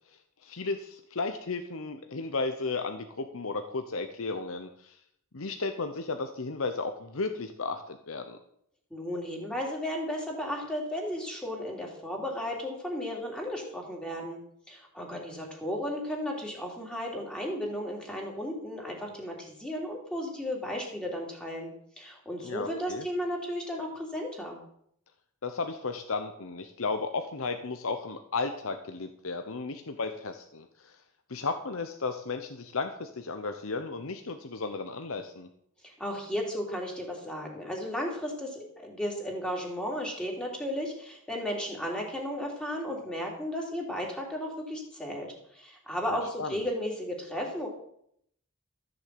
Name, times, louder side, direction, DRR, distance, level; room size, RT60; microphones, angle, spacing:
voice 1, 0.4-4.9 5.3-8.4 22.4-23.0 25.4-30.9 31.3-35.5 46.1-46.5, left 3 dB, 70° left, 7 dB, 0.9 m, -34 dB
voice 2, 8.9-14.4 14.7-24.6 35.8-45.3 45.5-47.7, equal, 5° left, -1 dB, 3.1 m, -34 dB
14.0 x 6.9 x 7.8 m, 0.70 s
head